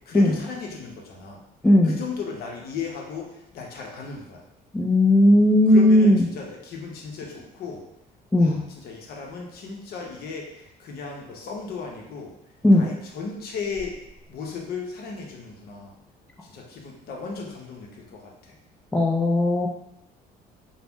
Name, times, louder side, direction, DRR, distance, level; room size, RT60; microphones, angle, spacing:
voice 1, 0.1-1.4 1.9-4.4 5.7-7.8 8.4-12.3 12.7-14.0 14.3-15.9 16.4-18.6, left 5 dB, 65° left, -1 dB, 0.7 m, -35 dB
voice 2, 1.6-2.0 4.7-6.3 8.3-8.6 12.6-12.9 18.9-19.7, left 1 dB, 5° left, 0 dB, 0.3 m, -17 dB
2.6 x 2.1 x 3.4 m, 0.83 s
cardioid pair, 110°, 17 cm